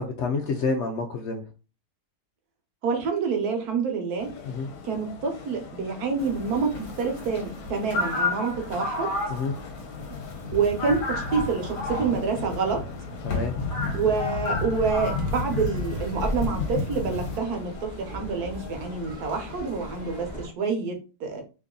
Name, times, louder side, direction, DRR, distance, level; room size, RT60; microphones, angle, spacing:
voice 1, 0.0-1.4 4.4-4.7 9.3-9.5 13.2-13.5, left 4 dB, 90° left, 4 dB, 0.6 m, -28 dB
voice 2, 2.8-4.3 4.8-9.1 10.5-12.8 13.9-21.4, right 5 dB, 65° right, 4 dB, 1.3 m, -27 dB
sound 1, 4.2-20.5, left 5 dB, 70° left, 1.1 m, -43 dB
sound 2, 6.2-17.4, left 3 dB, 50° left, 1.1 m, -31 dB
sound 3, 14.7-20.5, left 1 dB, 40° right, 0.6 m, -37 dB
3.1 x 2.6 x 3.6 m, 0.33 s
omnidirectional pair, 1.8 m